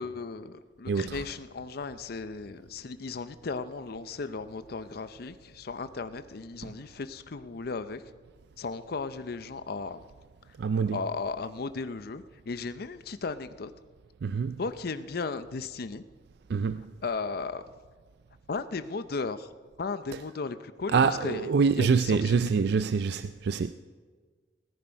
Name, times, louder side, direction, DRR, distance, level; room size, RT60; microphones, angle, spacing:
voice 1, 0.0-8.0 8.6-10.0 10.7-13.7 14.6-16.0 17.0-17.6 18.5-19.5 19.8-22.6, left 4 dB, 60° left, 0.6 m, -36 dB
voice 2, 0.9-1.2 10.6-11.0 14.2-14.6 16.5-16.9 20.9-23.7, right 5 dB, 65° right, 0.4 m, -25 dB
17.5 x 10.5 x 4.5 m
head